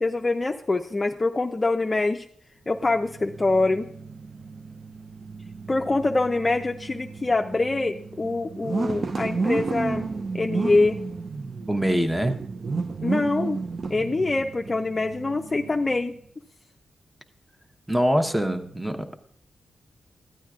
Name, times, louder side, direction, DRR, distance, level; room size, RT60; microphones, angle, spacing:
voice 1, 0.0-2.3 2.7-3.9 5.7-10.1 10.3-11.0 13.0-13.6 13.9-16.1, left 3 dB, 30° left, 4 dB, 0.4 m, -24 dB
sound 1, 2.8-16.1, right 4 dB, 50° right, 0.5 m, -32 dB
voice 2, 11.7-12.4 17.9-19.1, equal, 5° right, 7 dB, 0.8 m, -23 dB
14.0 x 8.8 x 2.4 m, 0.62 s
cardioid pair, 80°, 0 cm